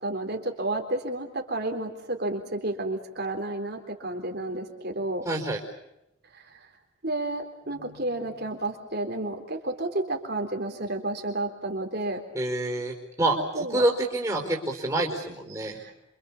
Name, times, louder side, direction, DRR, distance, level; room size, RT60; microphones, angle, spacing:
voice 1, 0.0-5.3 6.3-6.6 7.0-12.2 13.5-13.9 15.7-15.9, right 2 dB, 50° right, 4 dB, 3.8 m, -31 dB
voice 2, 5.2-5.6 12.3-15.8, right 1 dB, 15° right, 0 dB, 4.6 m, -27 dB
28.0 x 26.5 x 7.2 m, 0.87 s
head